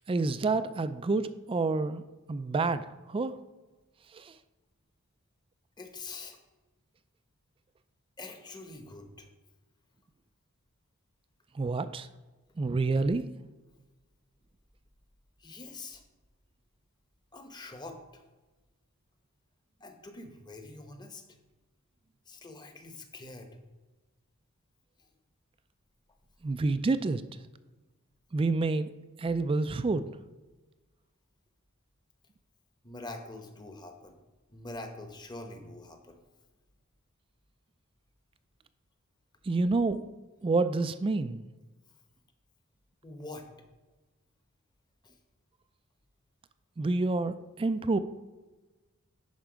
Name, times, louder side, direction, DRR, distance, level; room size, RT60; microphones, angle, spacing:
voice 1, 0.1-2.0 2.3-2.8 3.1-3.3 4.1-4.3 11.5-12.1 12.6-13.2 26.4-27.2 28.3-28.9 29.2-30.0 39.5-40.0 40.4-41.5 46.8-48.0, right 3 dB, 25° right, 12 dB, 0.3 m, -28 dB
voice 2, 5.8-6.4 8.2-9.3 15.4-16.0 17.3-18.2 19.8-21.2 22.3-23.6 32.8-34.2 34.5-36.2 43.0-43.5 45.0-45.1, left 2 dB, 20° left, 5 dB, 1.0 m, -44 dB
10.5 x 4.5 x 5.1 m, 1.2 s
head